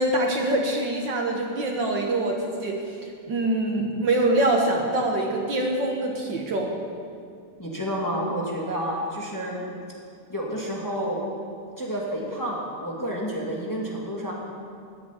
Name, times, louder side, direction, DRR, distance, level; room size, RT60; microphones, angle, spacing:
voice 1, 0.0-2.8 3.3-6.7, right 1 dB, 60° right, 1 dB, 1.9 m, -24 dB
voice 2, 7.6-9.7 10.3-11.2 11.8-14.3, equal, 10° left, -3 dB, 2.1 m, -29 dB
15.0 x 7.5 x 9.9 m, 2.3 s
omnidirectional pair, 2.4 m